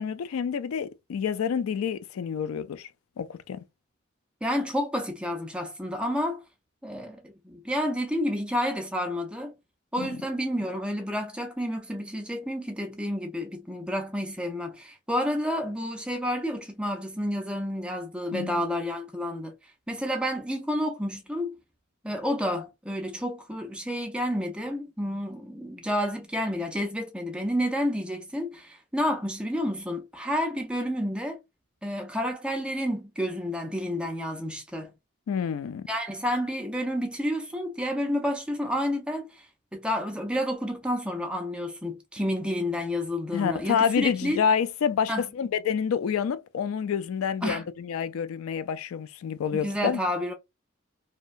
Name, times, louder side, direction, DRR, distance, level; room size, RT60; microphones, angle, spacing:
voice 1, 0.0-2.9 3.2-3.6 10.0-10.1 18.3-18.6 35.3-35.9 43.3-50.0, left 7 dB, 90° left, 0.3 m, -28 dB
voice 2, 4.4-6.4 6.8-9.5 9.9-19.5 19.9-21.6 22.0-31.4 31.8-34.9 35.9-39.5 39.7-44.4 45.1-45.2 47.4-47.6 49.5-50.3, equal, 5° right, 0.4 m, -30 dB
2.7 x 2.2 x 2.4 m
head